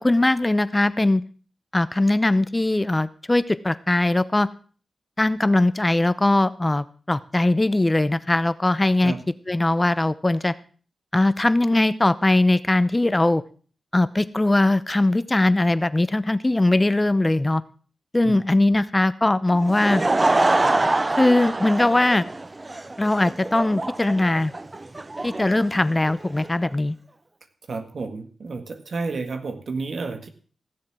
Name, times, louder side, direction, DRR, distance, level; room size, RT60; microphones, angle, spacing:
voice 1, 0.0-1.2 1.7-4.5 5.2-9.1 9.5-10.5 11.1-13.4 13.9-17.6 18.1-20.0 21.2-22.3 23.0-24.5 25.2-27.0, left 2 dB, 20° left, 15 dB, 0.7 m, -20 dB
Laughter / Crowd, 19.5-26.5, right 2 dB, 30° right, 0.5 m, -25 dB
voice 2, 27.7-30.3, right 3 dB, 70° right, 8 dB, 1.7 m, -31 dB
15.5 x 7.5 x 6.1 m, 0.42 s
cardioid pair, 60°, 0 cm